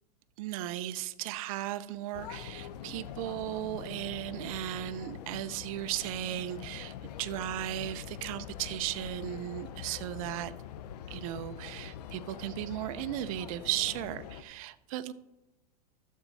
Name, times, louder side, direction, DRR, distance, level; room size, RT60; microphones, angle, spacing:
voice 1, 0.4-10.5 11.1-15.1, right 13 dB, 55° right, 13 dB, 0.6 m, -36 dB
sound 1, 2.1-14.4, left 10 dB, 75° left, 0.7 m, -44 dB
12.0 x 7.3 x 4.1 m, 0.98 s
supercardioid pair, 140°, 21 cm